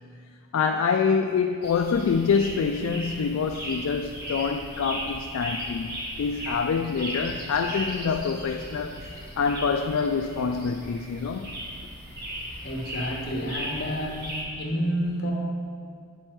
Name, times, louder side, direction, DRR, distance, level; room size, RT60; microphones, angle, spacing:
voice 1, 0.5-11.6, left 5 dB, 65° left, 5 dB, 0.3 m, -26 dB
sound 1, 1.6-14.4, equal, 45° right, 1.4 m, -37 dB
voice 2, 12.2-15.3, equal, 50° left, 0 dB, 1.1 m, -30 dB
8.9 x 4.4 x 4.5 m, 2.3 s
head